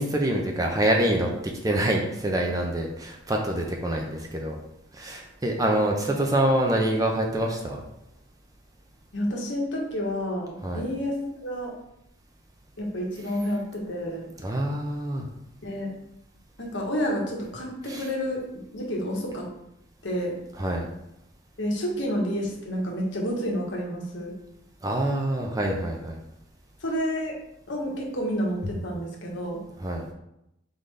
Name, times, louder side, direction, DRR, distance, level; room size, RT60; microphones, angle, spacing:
voice 1, 0.0-4.6 4.9-7.8 10.6-10.8 14.4-15.3 17.9-18.0 20.6-20.9 24.8-26.2 29.8-30.0, right 1 dB, 20° right, 0 dB, 0.5 m, -26 dB
voice 2, 9.1-11.7 12.8-14.3 15.6-15.9 16.6-18.4 18.7-19.5 20.0-20.4 21.6-24.3 26.8-27.4 27.7-29.6, equal, 70° left, -1 dB, 1.1 m, -29 dB
3.9 x 3.7 x 3.3 m, 0.83 s
head